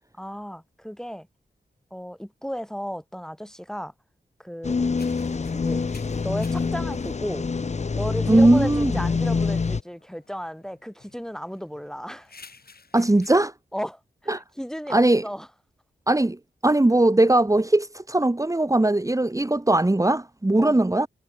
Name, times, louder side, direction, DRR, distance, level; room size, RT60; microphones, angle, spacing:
voice 1, 0.2-1.3 1.9-3.9 4.4-4.8 5.5-5.8 6.2-7.5 8.0-12.3 13.7-15.5 20.6-20.8, equal, 5° left, 2.5 m, -34 dB
sound 1, 4.6-9.8, left 4 dB, 40° left, 0.7 m, -26 dB
sound 2, 5.0-13.3, left 4 dB, 55° left, 7.7 m, -54 dB
voice 2, 8.3-8.9 12.9-13.5 14.3-14.4 14.9-15.2 16.1-21.1, right 2 dB, 15° right, 1.7 m, -20 dB
cardioid pair, 60°, 19 cm